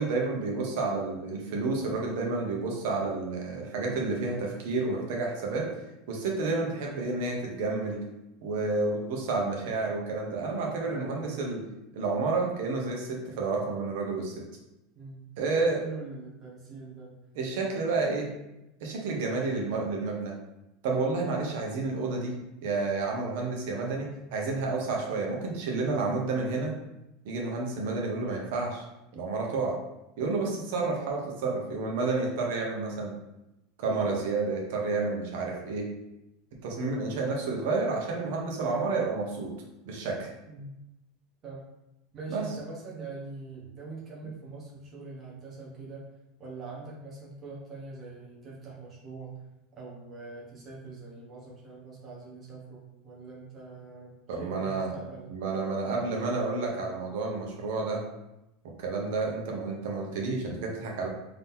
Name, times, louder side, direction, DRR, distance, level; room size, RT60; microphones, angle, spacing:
voice 1, 0.0-5.7 6.1-8.0 8.4-11.6 11.9-14.3 15.4-15.8 17.4-18.3 18.8-20.4 20.8-26.7 27.2-28.8 29.1-29.8 30.2-33.2 33.8-35.9 36.6-39.5 39.9-40.3 42.3-42.4 54.3-54.9 55.3-58.0 58.8-61.1, right 3 dB, 65° right, 0 dB, 1.1 m, -30 dB
voice 2, 10.8-11.5 14.9-15.3 15.5-17.1 40.5-40.7 41.4-41.6 42.1-46.0 46.4-49.4 49.7-55.4 55.8-56.3, right 3 dB, 20° right, -5 dB, 1.2 m, -43 dB
3.8 x 2.9 x 3.7 m, 0.92 s
supercardioid pair, 170°, 0 cm